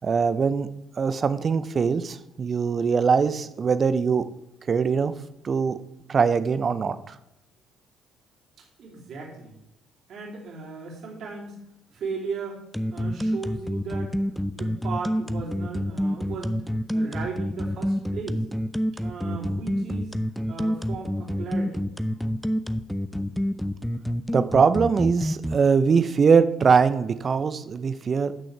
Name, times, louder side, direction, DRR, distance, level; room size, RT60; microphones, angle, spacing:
voice 1, 0.0-0.7 1.0-4.2 4.7-5.1 5.4-5.8 6.1-7.1 24.3-28.3, right 5 dB, 40° right, 12 dB, 0.6 m, -22 dB
voice 2, 8.8-9.6 10.1-11.6 11.9-12.6 12.9-14.2 14.5-16.6 16.9-18.4 19.0-20.1 20.5-21.8, right 4 dB, 55° right, -2 dB, 3.0 m, -36 dB
sound 1, 12.7-25.6, equal, 5° left, 0.6 m, -27 dB
13.5 x 6.3 x 3.3 m, 0.85 s
hypercardioid pair, 50°, 0 cm